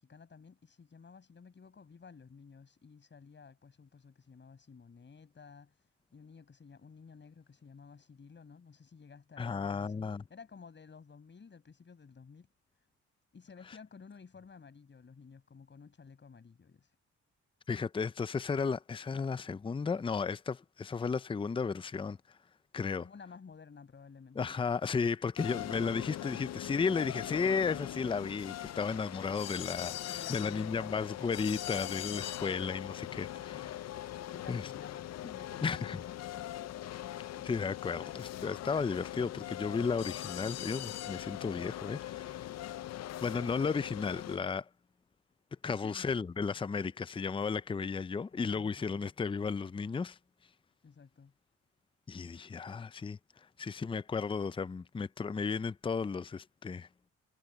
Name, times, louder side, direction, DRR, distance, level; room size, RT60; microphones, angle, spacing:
voice 1, 0.0-12.5 12.8-12.9 13.3-17.0 23.0-24.5 30.1-30.9 33.3-33.9 34.3-36.5 45.6-46.1 48.3-49.1 50.8-51.3, left 5 dB, 40° left, 6.8 m, -54 dB
voice 2, 9.4-10.2 17.7-22.2 22.7-23.0 24.4-33.7 34.5-34.7 35.6-36.0 37.4-42.4 43.2-44.7 45.6-50.2 52.1-53.2 53.6-56.9, left 5 dB, 15° left, 0.5 m, -34 dB
sound 1, 25.4-44.4, left 13 dB, 60° left, 0.7 m, -41 dB
cardioid pair, 90°, 30 cm